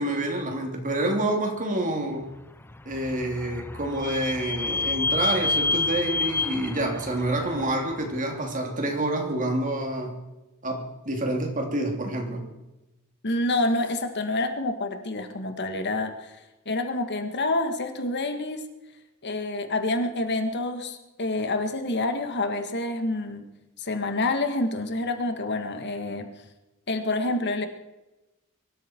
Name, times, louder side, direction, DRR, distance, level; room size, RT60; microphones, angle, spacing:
voice 1, 0.0-2.3 2.8-10.2 10.6-12.5, right 1 dB, 40° right, 2 dB, 3.1 m, -28 dB
Vehicle / Squeak, 2.6-8.2, left 3 dB, 10° left, 0.5 m, -29 dB
voice 2, 13.2-16.4 16.7-18.6 19.2-23.5 23.8-26.3 26.9-27.7, left 2 dB, 55° left, 7 dB, 1.8 m, -27 dB
23.5 x 13.0 x 4.6 m, 1.0 s
head